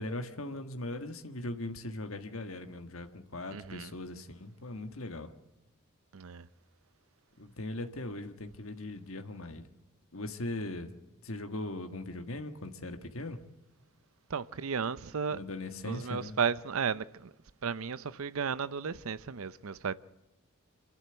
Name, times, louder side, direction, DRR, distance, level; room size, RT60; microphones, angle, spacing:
voice 1, 0.0-5.3 7.4-9.7 10.1-10.9 11.2-13.4 15.3-16.4, left 2 dB, 65° left, 1.5 m, -39 dB
voice 2, 3.5-3.9 6.1-6.5 14.3-15.4 15.8-17.3 17.6-19.9, right 6 dB, 70° right, 0.6 m, -34 dB
26.5 x 12.0 x 8.0 m
head